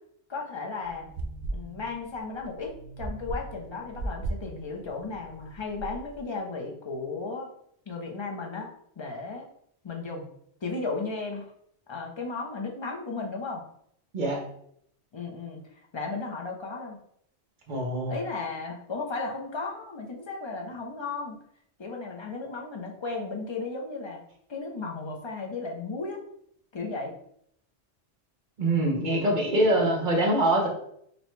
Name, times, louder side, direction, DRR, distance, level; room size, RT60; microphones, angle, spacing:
voice 1, 0.3-1.1 1.5-7.5 7.9-9.5 9.8-10.2 10.6-11.5 11.9-13.6 15.1-15.6 15.9-17.0 18.1-21.4 21.8-24.2 24.5-26.2 26.7-27.1 28.7-29.2, left 3 dB, 35° left, 1 dB, 0.4 m, -35 dB
sound 1, 0.8-6.2, right 2 dB, 80° right, 0.9 m, -38 dB
voice 2, 17.7-18.1 28.6-30.7, right 1 dB, 45° right, 0 dB, 0.9 m, -24 dB
5.3 x 2.1 x 3.1 m, 0.69 s
omnidirectional pair, 1.2 m